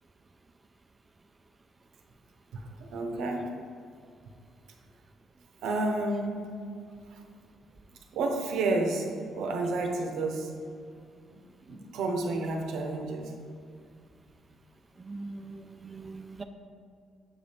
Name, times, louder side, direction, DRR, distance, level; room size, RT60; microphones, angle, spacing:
voice 1, 2.5-3.5 5.6-6.4 8.1-10.5 11.3-11.4 11.7-13.3, right 2 dB, 85° right, 3 dB, 0.7 m, -30 dB
voice 2, 15.0-16.4, right 3 dB, 25° right, 5 dB, 0.3 m, -42 dB
7.1 x 2.8 x 5.1 m, 2.3 s
cardioid pair, 90°, 0 cm